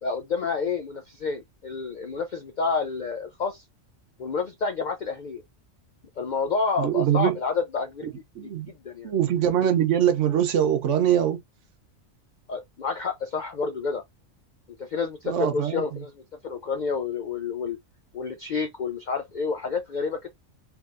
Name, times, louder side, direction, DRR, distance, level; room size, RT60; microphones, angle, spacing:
voice 1, 0.0-3.6 4.2-5.4 6.2-8.1 8.4-9.1 12.5-14.0 14.8-16.1 16.4-17.8 18.1-20.3, left 5 dB, 65° left, 0.4 m, -29 dB
voice 2, 6.8-7.4 8.3-8.7 9.0-11.4 15.2-15.8, right 10 dB, 70° right, 1.0 m, -23 dB
3.5 x 2.8 x 2.4 m
omnidirectional pair, 1.3 m